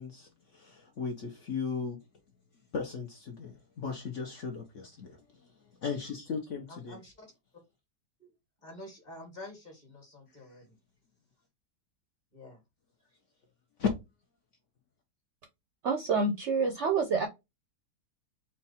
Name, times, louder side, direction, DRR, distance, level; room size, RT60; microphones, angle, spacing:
voice 1, 0.0-2.0 2.7-5.5 5.8-7.0 10.5-10.6 13.8-13.9, left 5 dB, 55° left, 1.0 m, -36 dB
voice 2, 6.7-7.3 8.2-8.3 8.6-10.7 12.3-12.6, left 1 dB, 30° left, 1.6 m, -48 dB
voice 3, 15.8-17.3, right 4 dB, 60° right, 0.7 m, -27 dB
4.4 x 2.3 x 4.1 m
omnidirectional pair, 1.7 m